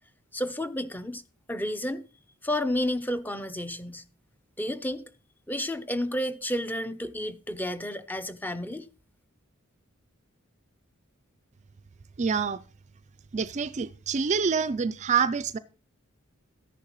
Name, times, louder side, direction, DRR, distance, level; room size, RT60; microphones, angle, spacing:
voice 1, 0.3-1.2 1.5-2.1 2.4-4.0 4.6-5.1 5.5-8.9, left 1 dB, 10° left, 0.7 m, -31 dB
voice 2, 12.2-12.6 13.3-15.6, right 6 dB, 35° right, 0.4 m, -26 dB
13.5 x 10.5 x 3.1 m
head